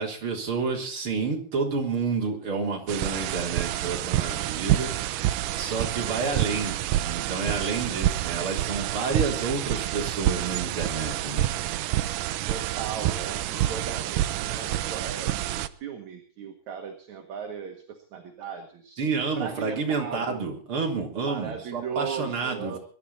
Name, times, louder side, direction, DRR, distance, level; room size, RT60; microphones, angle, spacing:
voice 1, 0.0-11.5 13.5-13.8 19.0-22.8, right 4 dB, 40° right, 0 dB, 4.3 m, -30 dB
sound 1, 2.9-15.7, right 14 dB, 75° right, 2.3 m, -28 dB
voice 2, 12.5-19.0 19.4-20.4 21.3-22.8, right 7 dB, 60° right, 4 dB, 3.0 m, -37 dB
23.0 x 12.0 x 4.2 m, 0.43 s
omnidirectional pair, 3.9 m